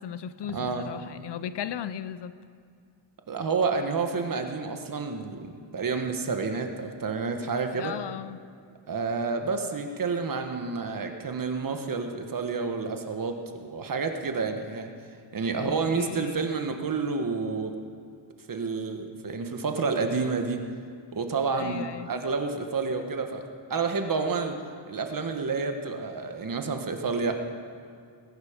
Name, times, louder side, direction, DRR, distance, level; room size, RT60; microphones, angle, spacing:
voice 1, 0.0-2.4 7.7-8.4 15.5-16.5 21.6-22.1, left 9 dB, 65° left, 14 dB, 0.6 m, -36 dB
voice 2, 0.5-0.9 3.3-7.9 8.9-14.9 15.3-17.7 18.5-20.6 21.1-23.4 23.7-24.6 24.9-27.3, right 4 dB, 45° right, 5 dB, 1.3 m, -29 dB
20.5 x 11.5 x 5.1 m, 2.3 s
wide cardioid pair, 160°, 46 cm